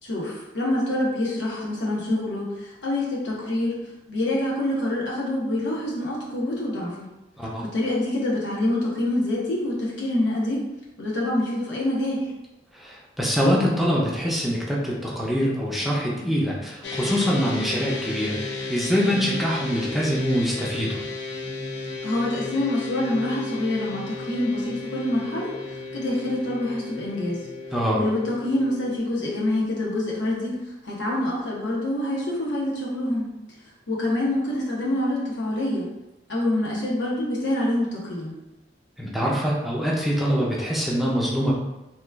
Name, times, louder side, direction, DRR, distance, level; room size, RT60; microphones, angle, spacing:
voice 1, 0.0-3.8 4.1-7.1 7.6-10.6 11.0-12.3 22.0-27.5 27.9-33.3 33.9-35.9 36.3-38.3, left 1 dB, 85° left, -5 dB, 1.0 m, -26 dB
voice 2, 12.7-21.0 27.7-28.0 39.0-41.5, equal, ahead, -5 dB, 0.5 m, -24 dB
sound 1, 16.8-29.0, left 3 dB, 65° left, 0.5 m, -34 dB
2.9 x 2.3 x 3.4 m, 0.96 s
head